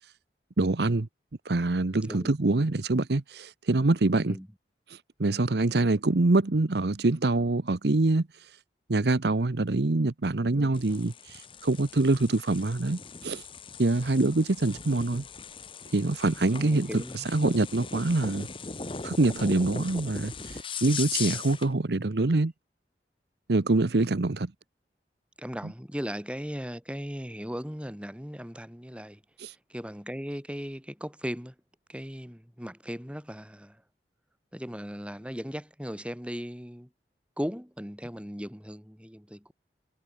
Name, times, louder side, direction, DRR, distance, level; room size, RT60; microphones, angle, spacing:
voice 1, 0.6-1.1 1.5-4.4 5.2-8.3 8.9-13.4 13.8-15.2 15.9-18.5 19.0-20.3 20.8-22.5 23.5-24.5 29.4-29.5, right 2 dB, 70° right, 0.9 m, -25 dB
sound 1, 10.7-21.7, left 5 dB, 30° left, 1.6 m, -39 dB
voice 2, 16.5-17.3 25.4-29.2 29.7-31.5 31.9-33.8 34.5-36.9 37.4-39.5, equal, 5° right, 7.1 m, -37 dB
head